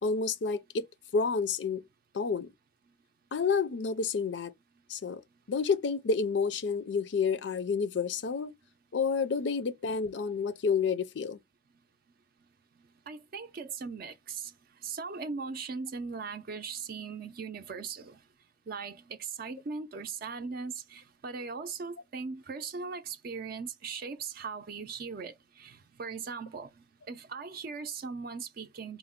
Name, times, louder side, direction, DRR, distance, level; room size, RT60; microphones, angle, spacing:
voice 1, 0.0-0.9 1.1-1.9 2.1-2.5 3.3-4.5 4.9-5.2 5.5-8.5 8.9-11.4, left 5 dB, 90° left, 0.5 m, -29 dB
voice 2, 13.1-14.5 14.8-18.2 18.7-26.7 27.1-29.0, right 5 dB, 55° right, 0.4 m, -39 dB
4.4 x 2.0 x 3.6 m
head